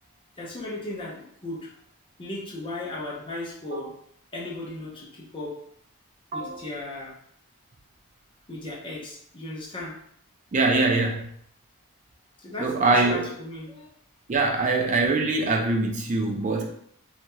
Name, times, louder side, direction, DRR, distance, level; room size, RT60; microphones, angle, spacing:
voice 1, 0.4-1.7 2.2-3.9 4.3-5.5 6.3-7.1 8.5-9.9 12.4-13.9, left 2 dB, 25° left, -4 dB, 0.7 m, -36 dB
voice 2, 6.3-6.6 10.5-11.3 12.6-13.3 14.3-16.7, right 3 dB, 35° right, 2 dB, 0.4 m, -23 dB
2.9 x 2.9 x 2.2 m, 0.68 s
head